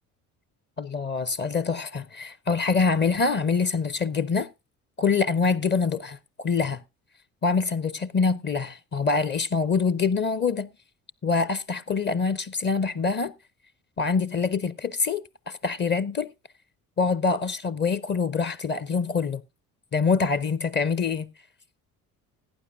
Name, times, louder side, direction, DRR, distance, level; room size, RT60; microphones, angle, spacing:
voice 1, 0.8-4.5 5.0-6.8 7.4-10.7 11.2-13.3 14.0-16.3 17.0-19.4 19.9-21.3, left 4 dB, 25° left, 0.5 m, -25 dB
17.5 x 9.4 x 2.5 m
figure-of-eight pair, 50°, 43 cm